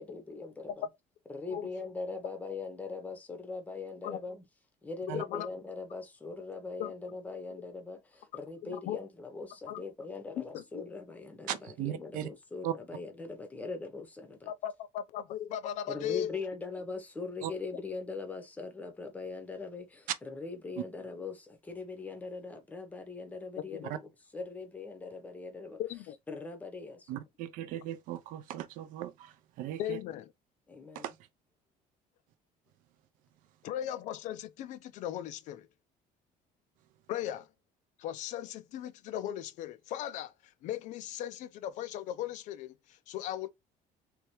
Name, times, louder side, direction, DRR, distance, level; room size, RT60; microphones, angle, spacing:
voice 1, 0.0-0.8 1.3-4.4 4.8-14.5 15.9-25.8 26.3-27.2 30.7-31.1, left 4 dB, 10° left, 0.7 m, -41 dB
voice 2, 5.1-5.5 6.8-6.9 8.6-9.0 9.7-9.8 10.4-10.6 14.5-16.3 23.6-23.9 25.8-26.2 29.8-30.3 33.6-35.7 37.1-37.5 38.0-43.5, left 11 dB, 55° left, 0.4 m, -37 dB
voice 3, 11.5-12.3 12.6-12.7 17.4-17.5 23.9-24.0 27.1-30.0 31.0-31.1, right 12 dB, 65° right, 0.5 m, -37 dB
3.3 x 3.2 x 3.0 m
cardioid pair, 175°, 15 cm